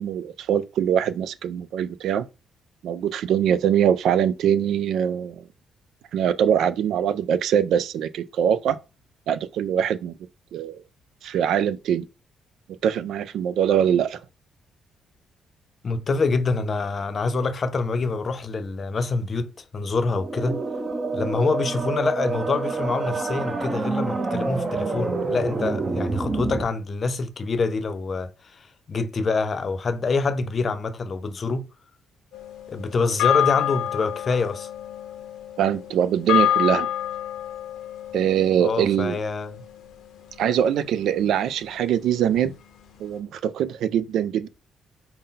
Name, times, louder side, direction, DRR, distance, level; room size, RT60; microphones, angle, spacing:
voice 1, 0.0-2.3 2.8-5.4 6.1-8.8 9.3-10.1 10.5-10.8 11.2-12.1 12.8-14.2 35.6-36.9 38.1-39.2 40.4-42.5 43.0-44.5, right 9 dB, 75° right, 0.3 m, -23 dB
voice 2, 15.8-20.6 21.1-31.7 32.7-34.7 38.6-39.6, left 4 dB, 40° left, 0.6 m, -26 dB
sound 1, 20.1-26.6, right 3 dB, 30° right, 0.7 m, -27 dB
sound 2, 32.3-40.8, left 11 dB, 80° left, 0.7 m, -28 dB
5.3 x 2.1 x 3.8 m
cardioid pair, 90°, 0 cm